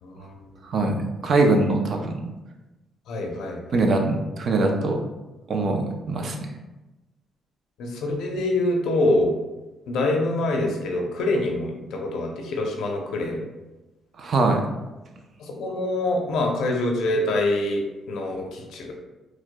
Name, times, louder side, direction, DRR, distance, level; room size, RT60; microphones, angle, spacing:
voice 1, 0.0-0.6 3.1-3.9 7.8-9.3 9.9-13.4 15.4-18.9, left 2 dB, 80° left, 1 dB, 0.6 m, -25 dB
voice 2, 0.7-2.2 3.7-5.0 5.5-6.5 14.2-14.6, right 2 dB, 55° right, 3 dB, 0.5 m, -22 dB
4.6 x 2.1 x 2.2 m, 1.1 s
cardioid pair, 90°, 0 cm